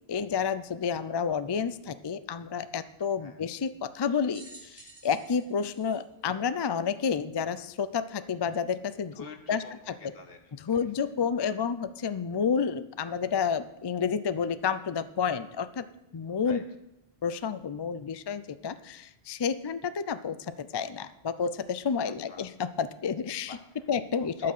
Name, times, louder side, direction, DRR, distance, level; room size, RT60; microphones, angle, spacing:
voice 1, 0.1-9.6 10.6-15.8 16.1-16.6 17.2-23.6 23.9-24.5, left 6 dB, 45° left, 12 dB, 0.3 m, -30 dB
sound 1, 4.3-7.0 7.7-7.8 8.9-9.0, right 2 dB, 25° right, 1.2 m, -52 dB
voice 2, 9.1-11.1 16.4-16.6 22.3-22.5 23.5-23.9 24.2-24.5, left 4 dB, 70° left, 5 dB, 1.4 m, -47 dB
12.5 x 5.8 x 6.6 m, 0.89 s
omnidirectional pair, 1.0 m